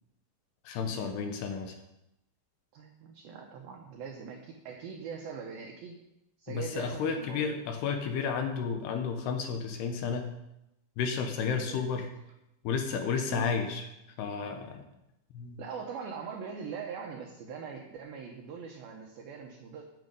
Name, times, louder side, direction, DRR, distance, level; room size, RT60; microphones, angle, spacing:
voice 1, 0.7-1.7 6.5-10.3 11.0-12.1 12.6-13.8 14.2-14.8 15.3-15.6, left 6 dB, 75° left, 5 dB, 2.6 m, -32 dB
voice 2, 2.7-6.0 6.4-7.6 11.6-11.9 13.3-13.5 15.6-19.8, right 6 dB, 75° right, 1 dB, 2.2 m, -42 dB
9.3 x 8.1 x 5.3 m, 0.88 s
omnidirectional pair, 5.3 m